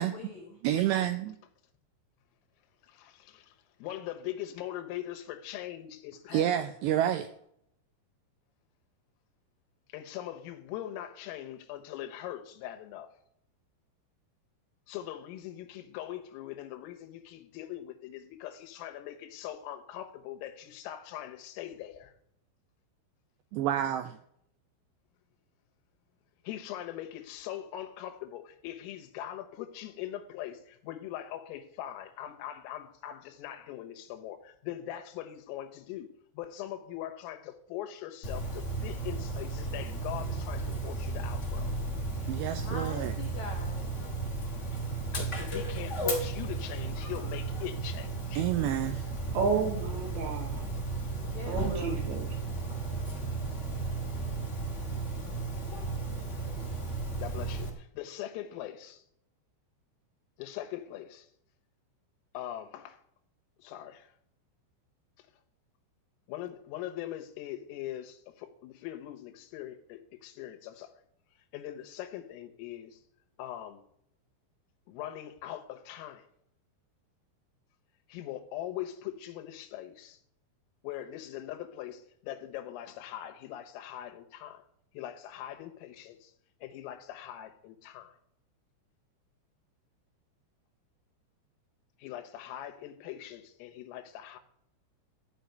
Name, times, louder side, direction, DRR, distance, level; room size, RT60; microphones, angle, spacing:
voice 1, 0.0-0.5 42.6-43.9 51.3-52.0, left 4 dB, 70° left, 1.7 m, -42 dB
voice 2, 0.6-1.4 6.3-7.3 23.5-24.1 42.3-43.1 48.4-49.0, right 11 dB, 90° right, 2.4 m, -29 dB
voice 3, 2.8-6.6 9.9-13.1 14.9-22.1 26.4-41.7 45.1-48.5 57.2-59.0 60.4-61.3 62.3-63.0 63.6-64.1 66.3-70.9 71.5-73.0 73.4-73.8 74.9-76.3 78.1-80.2 80.8-84.6 84.9-86.3 86.6-88.2 92.0-94.4, left 12 dB, 85° left, 3.8 m, -41 dB
Dog, 38.2-57.7, right 3 dB, 40° left, 1.0 m, -34 dB
voice 4, 49.3-50.7 51.5-52.3, right 5 dB, 65° right, 4.4 m, -31 dB
14.5 x 6.1 x 9.3 m
omnidirectional pair, 5.8 m